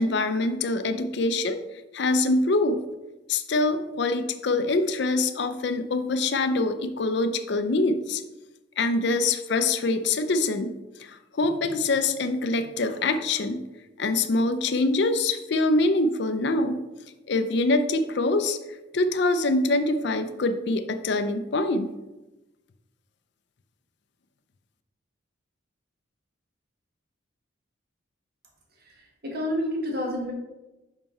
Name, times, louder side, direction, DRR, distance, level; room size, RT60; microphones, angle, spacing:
voice 1, 0.0-1.6 1.9-2.8 3.3-8.2 8.8-10.7 11.0-13.6 14.0-16.8 17.3-18.6 18.9-21.9, left 2 dB, 60° left, 9 dB, 0.5 m, -24 dB
voice 2, 28.7-30.3, equal, 50° right, 0 dB, 1.4 m, -30 dB
5.8 x 5.4 x 4.3 m, 1.1 s
head